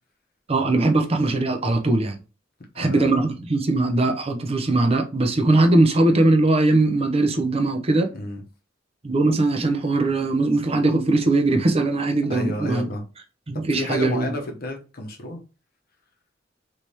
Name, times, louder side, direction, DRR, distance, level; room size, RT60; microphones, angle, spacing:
voice 1, 0.5-2.2 2.8-8.1 9.0-12.9 13.5-14.3, right 2 dB, 30° right, 0.6 m, -20 dB
voice 2, 2.7-3.2 8.1-8.4 12.3-13.0 13.5-15.4, left 1 dB, 50° left, 0.9 m, -31 dB
3.3 x 3.1 x 2.7 m
head